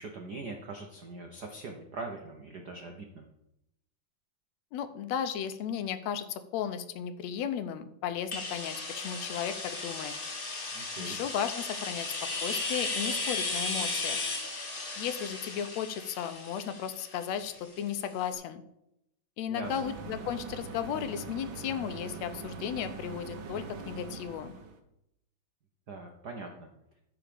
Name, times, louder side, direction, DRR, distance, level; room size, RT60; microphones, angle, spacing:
voice 1, 0.0-3.3 10.7-11.2 19.5-19.9 25.9-26.7, right 3 dB, 75° right, 3 dB, 0.9 m, -42 dB
voice 2, 4.7-10.1 11.0-12.1 12.4-14.2 15.0-18.6 19.4-24.5, left 9 dB, 75° left, 10 dB, 1.7 m, -35 dB
sound 1, 8.3-17.9, left 3 dB, 35° left, 1.9 m, -35 dB
sound 2, 19.6-24.8, right 5 dB, 60° right, 1.4 m, -42 dB
14.0 x 4.9 x 6.9 m, 0.83 s
omnidirectional pair, 3.4 m